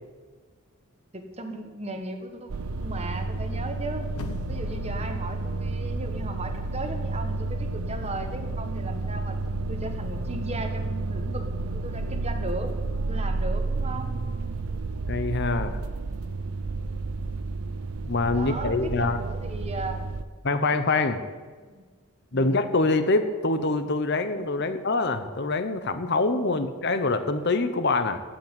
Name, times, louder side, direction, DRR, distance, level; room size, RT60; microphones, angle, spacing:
voice 1, 1.1-2.5 2.8-4.1 4.5-9.4 9.7-11.5 11.7-12.7 13.1-14.1 16.8-17.2 18.3-20.0 21.6-21.9 22.3-22.5 26.5-26.6, right 2 dB, 30° right, 6 dB, 1.2 m, -37 dB
sound 1, 2.5-20.2, right 3 dB, 80° right, 0.6 m, -31 dB
sound 2, 4.1-7.0 7.4-7.5, left 2 dB, 80° left, 1.1 m, -40 dB
voice 2, 15.1-15.8 18.0-19.2 20.4-21.2 22.3-28.2, left 3 dB, 50° left, 10 dB, 0.8 m, -25 dB
15.5 x 5.9 x 8.9 m, 1.4 s
head